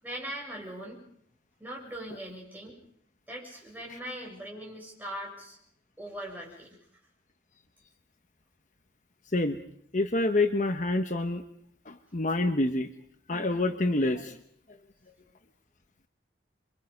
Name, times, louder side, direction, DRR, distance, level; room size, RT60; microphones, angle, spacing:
voice 1, 0.0-1.0 1.6-2.8 3.3-5.6 6.0-6.8, right 1 dB, 10° right, -2 dB, 7.2 m, -40 dB
voice 2, 9.9-11.4 11.9-12.9 13.3-14.4, left 2 dB, 40° left, 6 dB, 1.1 m, -27 dB
28.0 x 23.5 x 5.4 m, 0.68 s
head